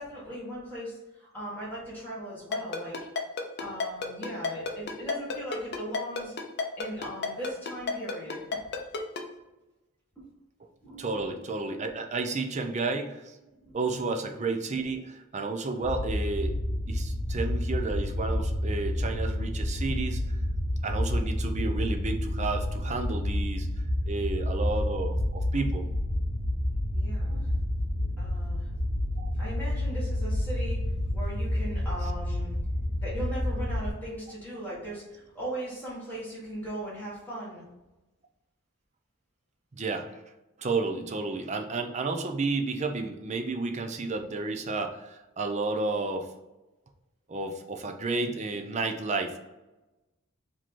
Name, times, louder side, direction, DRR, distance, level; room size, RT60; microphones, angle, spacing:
voice 1, 0.0-3.0 3.6-6.3 6.8-8.4 10.2-10.3 10.8-11.0 13.6-13.8 24.3-24.4 26.9-27.5 28.0-28.7 29.3-30.8 31.1-32.5 33.0-37.6, right 1 dB, 10° left, -8 dB, 1.5 m, -38 dB
Ringtone, 2.5-9.2, left 4 dB, 50° left, 0.6 m, -30 dB
voice 2, 11.0-13.4 13.7-16.6 16.9-20.2 20.8-23.7 24.1-25.9 29.2-29.3 39.7-40.2 40.6-46.3 47.3-49.4, right 3 dB, 30° right, 5 dB, 0.5 m, -31 dB
sound 1, 15.8-33.9, left 1 dB, 65° right, 1.3 m, -29 dB
4.9 x 2.8 x 3.7 m, 1.0 s
head